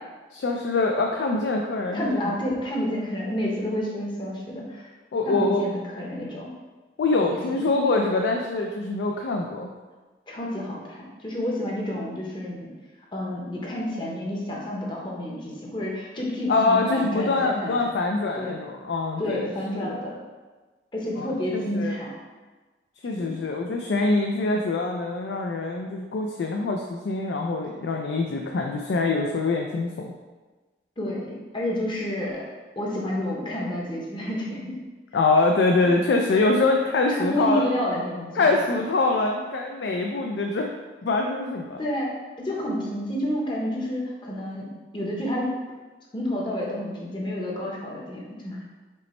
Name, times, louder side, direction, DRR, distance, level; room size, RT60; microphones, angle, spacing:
voice 1, 0.3-2.2 5.1-5.7 7.0-9.7 16.5-19.5 19.8-20.0 21.2-22.0 23.0-30.1 35.1-37.7 38.4-40.7 41.0-41.8, left 3 dB, 75° left, 2 dB, 0.4 m, -24 dB
voice 2, 1.9-4.9 5.3-6.5 7.2-7.6 10.3-12.7 13.1-17.8 18.4-18.5 19.2-20.2 20.9-22.2 23.0-23.3 31.0-32.4 32.8-34.8 37.1-38.5 41.8-42.1 42.4-45.5 46.1-48.6, equal, 25° left, -3 dB, 0.7 m, -30 dB
5.3 x 2.1 x 4.1 m, 1.3 s
head